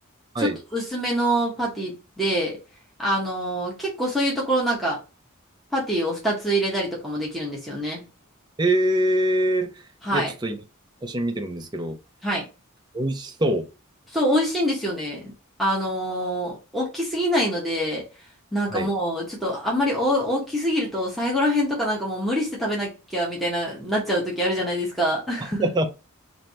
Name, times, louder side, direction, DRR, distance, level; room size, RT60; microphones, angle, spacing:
voice 1, 0.4-2.6 3.0-5.0 5.7-8.0 10.0-10.3 12.2-12.4 14.1-15.3 15.6-18.1 18.5-25.7, equal, ahead, 1.0 m, -25 dB
voice 2, 8.6-9.7 10.1-10.6 11.0-12.0 12.9-13.6 18.7-18.9 25.6-25.9, right 1 dB, 20° right, 0.5 m, -23 dB
3.2 x 2.6 x 4.1 m
head